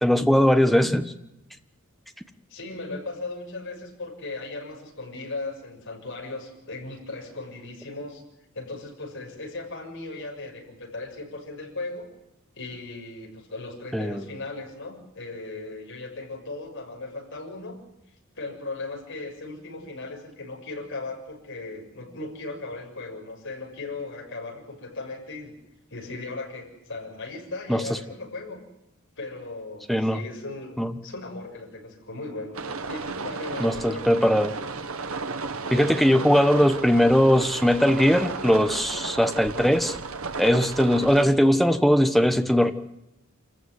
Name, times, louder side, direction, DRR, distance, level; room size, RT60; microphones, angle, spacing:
voice 1, 0.0-1.1 13.9-14.2 27.7-27.8 29.9-30.2 30.8-30.9 33.6-34.5 35.7-40.0 40.4-42.7, equal, ahead, 8 dB, 1.3 m, -20 dB
voice 2, 2.5-8.2 8.5-12.1 12.6-17.8 18.4-25.5 25.9-28.6 29.2-34.5, left 3 dB, 60° left, 1 dB, 6.9 m, -37 dB
sound 1, 32.5-41.3, right 4 dB, 80° right, 1.6 m, -34 dB
27.0 x 15.0 x 9.6 m, 0.90 s
head